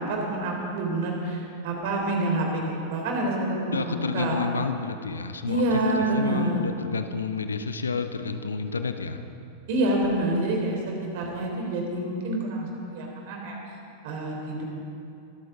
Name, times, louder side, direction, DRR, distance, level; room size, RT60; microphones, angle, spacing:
voice 1, 0.0-4.4 5.5-6.6 9.7-13.6 14.0-14.6, right 1 dB, 50° right, 0 dB, 3.8 m, -27 dB
voice 2, 3.7-5.6 6.0-9.2, left 4 dB, 75° left, 9 dB, 0.8 m, -30 dB
23.0 x 14.0 x 3.9 m, 2.6 s
figure-of-eight pair, 90°, 0 cm